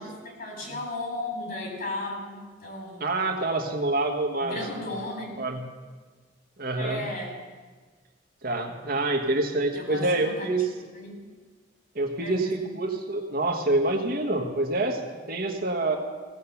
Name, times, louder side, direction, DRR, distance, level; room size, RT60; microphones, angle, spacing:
voice 1, 0.0-3.0 4.4-5.5 6.8-7.4 9.7-10.5 10.7-11.2 12.2-12.8, left 1 dB, 50° left, 0 dB, 4.0 m, -35 dB
voice 2, 3.0-4.6 5.4-5.6 6.6-7.0 8.4-10.7 11.9-15.0 15.3-16.0, right 2 dB, 50° right, 4 dB, 1.4 m, -26 dB
16.0 x 7.5 x 7.1 m, 1.4 s
head